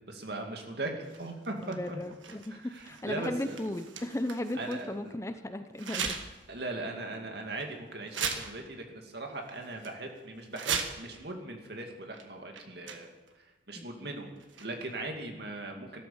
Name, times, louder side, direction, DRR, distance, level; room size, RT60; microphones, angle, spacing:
voice 1, 0.1-2.0 2.5-3.6 4.5-5.1 6.5-13.1 13.4-14.3 14.6-16.0, right 2 dB, 55° right, 3 dB, 2.3 m, -39 dB
sound 1, 1.0-4.9 5.8-6.5 6.9-7.0 7.6-7.7 8.1-8.8 9.1-9.2 9.5-9.9 10.4-11.2 12.1-12.2 12.5-13.3 14.4-14.9, right 6 dB, 90° right, 1.6 m, -38 dB
voice 2, 1.6-6.2 13.8-14.1, left 1 dB, 15° left, 9 dB, 0.6 m, -36 dB
13.5 x 12.5 x 7.1 m, 1.2 s
head